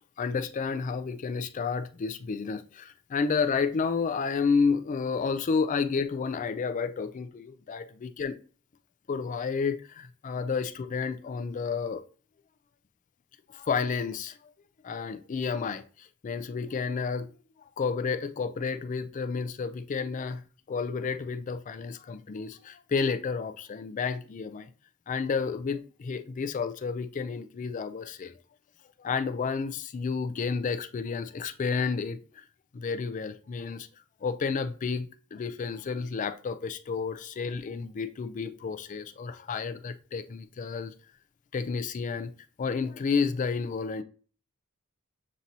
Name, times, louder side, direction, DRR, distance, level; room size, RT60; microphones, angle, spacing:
voice 1, 0.2-8.4 9.1-12.0 13.5-14.4 14.8-17.3 17.8-20.4 20.7-24.7 25.1-28.3 29.0-32.4 32.7-33.9 34.2-40.9 41.5-42.3 42.6-44.0, left 5 dB, 35° left, 0.3 m, -31 dB
7.3 x 2.7 x 2.7 m
head